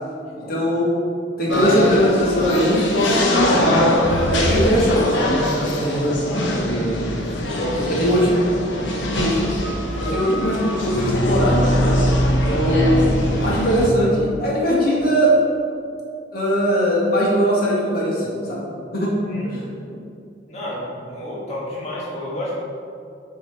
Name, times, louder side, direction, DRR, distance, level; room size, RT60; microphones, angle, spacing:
voice 1, 0.5-0.9 1.4-2.9 3.2-3.8 4.3-5.3 5.7-6.2 7.7-8.3 9.1-9.4 10.0-12.0 12.5-13.1 13.4-15.4 16.3-19.1 19.5-20.0, equal, 55° left, -5 dB, 1.9 m, -20 dB
sound 1, 1.5-13.9, equal, 90° left, 1.1 m, -21 dB
voice 2, 7.4-8.1 8.5-8.8 19.2-19.5 20.5-22.5, left 1 dB, 35° left, -7 dB, 1.4 m, -31 dB
8.5 x 4.7 x 4.5 m, 2.4 s
head